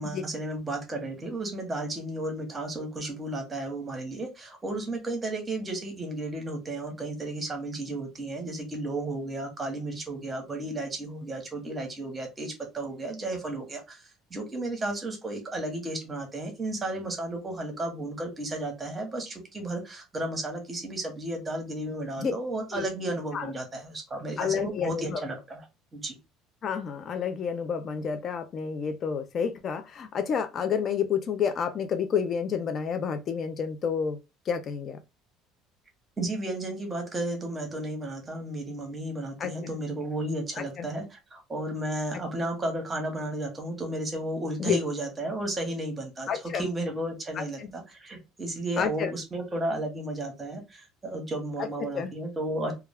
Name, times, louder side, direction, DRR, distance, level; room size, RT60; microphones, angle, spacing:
voice 1, 0.0-14.0 14.3-25.6 25.9-26.2 36.2-52.7, right 1 dB, 15° right, 0.8 m, -33 dB
voice 2, 24.4-25.2 26.6-34.2 34.5-35.0 39.4-39.7 40.6-40.9 44.6-44.8 46.3-46.7 47.3-47.7 48.8-49.1 51.6-52.1, left 7 dB, 35° left, 0.3 m, -30 dB
2.2 x 2.2 x 3.3 m
cardioid pair, 150°, 0 cm